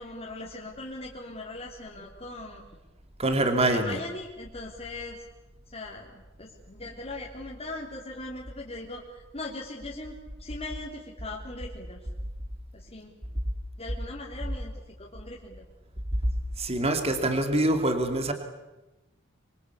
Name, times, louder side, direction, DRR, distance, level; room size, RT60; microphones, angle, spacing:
voice 1, 0.0-2.6 3.6-5.2 5.7-6.1 6.4-12.0 12.7-13.2 13.8-15.6, left 2 dB, 30° left, -3 dB, 3.5 m, -40 dB
voice 2, 3.2-4.0 16.6-18.3, right 1 dB, 30° right, 6 dB, 2.6 m, -25 dB
26.5 x 24.0 x 8.3 m, 1.0 s
head